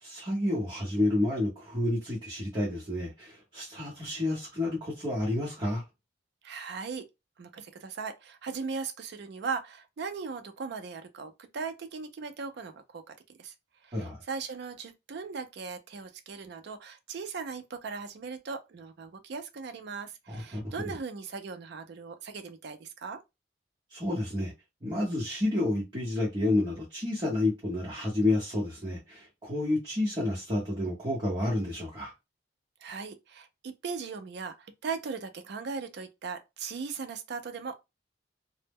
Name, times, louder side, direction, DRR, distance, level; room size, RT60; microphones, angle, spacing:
voice 1, 0.0-5.8 13.9-14.2 20.3-20.7 23.9-24.5 24.8-32.1, left 2 dB, 25° right, 0.8 m, -30 dB
voice 2, 6.4-7.1 7.4-13.5 13.8-23.2 32.8-37.9, right 5 dB, 60° right, 0.4 m, -38 dB
2.1 x 2.0 x 3.4 m
head